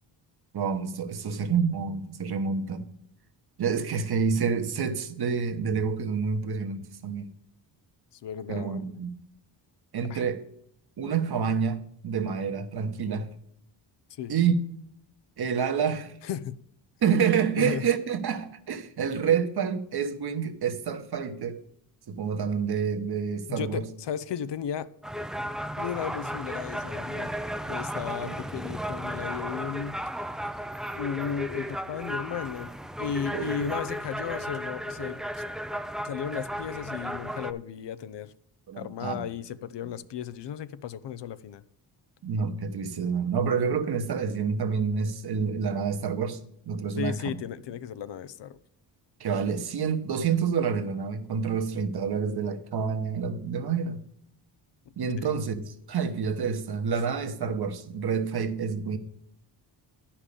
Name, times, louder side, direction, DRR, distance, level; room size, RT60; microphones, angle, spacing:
voice 1, 0.5-2.9 3.6-7.3 8.5-9.1 9.9-10.4 11.0-13.3 14.3-14.7 15.4-16.2 17.0-21.6 22.1-23.9 28.2-28.3 33.3-33.7 38.7-39.2 42.2-46.4 46.7-47.3 49.2-54.0 55.0-59.0, right 6 dB, 55° right, 1.2 m, -28 dB
voice 2, 8.2-8.9 10.1-10.2 14.2-14.3 16.2-16.6 17.0-17.1 17.6-17.8 23.5-24.9 25.8-27.3 27.7-30.3 31.0-32.7 33.0-35.4 36.0-38.3 38.8-41.6 47.0-48.6 55.2-55.3, left 8 dB, 70° left, 0.7 m, -35 dB
sound 1, 25.0-37.5, equal, ahead, 0.4 m, -34 dB
9.9 x 5.8 x 6.9 m
cardioid pair, 95°, 44 cm